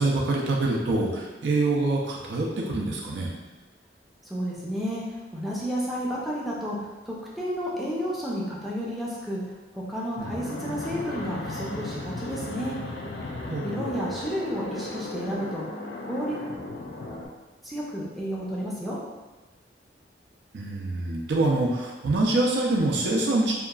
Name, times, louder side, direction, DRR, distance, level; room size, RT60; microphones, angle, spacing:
voice 1, 0.0-3.3 10.2-10.4 13.5-14.0 20.5-23.5, right 2 dB, 80° right, -2 dB, 0.5 m, -25 dB
voice 2, 4.2-6.8 7.1-9.4 9.7-12.8 13.6-15.7 16.1-16.4 17.6-19.0, equal, ahead, -6 dB, 0.4 m, -31 dB
Fixed-wing aircraft airplane, 10.2-17.3, left 2 dB, 65° left, 0.4 m, -36 dB
2.8 x 2.3 x 2.3 m, 1.2 s
head